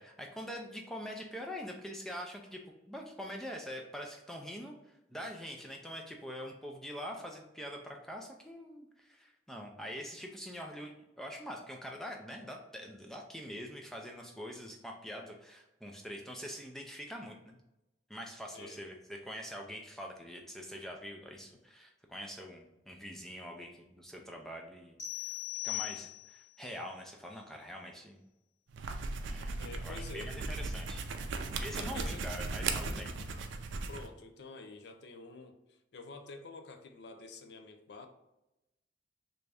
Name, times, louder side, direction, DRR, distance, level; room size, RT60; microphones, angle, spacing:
voice 1, 0.0-2.6 2.9-17.6 18.1-25.0 25.2-25.3 25.6-28.2 29.2-31.0 31.6-33.1, equal, ahead, 0.4 m, -44 dB
sound 1, 25.0-26.5, left 17 dB, 85° left, 1.0 m, -39 dB
sound 2, 28.7-34.1, right 3 dB, 90° right, 0.4 m, -37 dB
voice 2, 29.6-30.4 31.7-32.2 33.9-38.1, left 3 dB, 70° left, 0.5 m, -48 dB
3.3 x 2.6 x 3.3 m
head